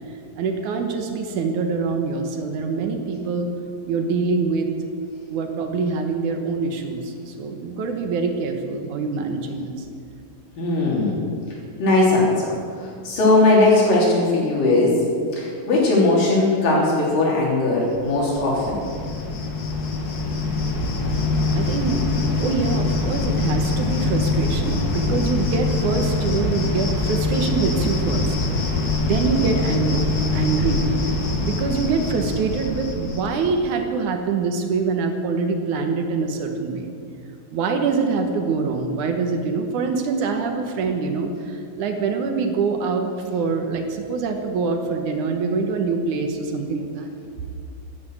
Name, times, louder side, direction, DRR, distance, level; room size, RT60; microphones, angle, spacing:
voice 1, 0.4-3.5 3.9-4.7 5.3-9.9 21.6-22.0 22.4-28.4 28.7-30.1 30.3-30.9 31.4-36.9 37.5-47.1, right 4 dB, 65° right, 4 dB, 2.5 m, -24 dB
voice 2, 10.6-11.2 11.5-15.0 15.3-18.8, left 2 dB, 65° left, -4 dB, 5.0 m, -19 dB
Cricket, 17.9-33.7, left 3 dB, 90° left, 0.8 m, -24 dB
12.5 x 11.0 x 7.9 m, 2.3 s
omnidirectional pair, 4.1 m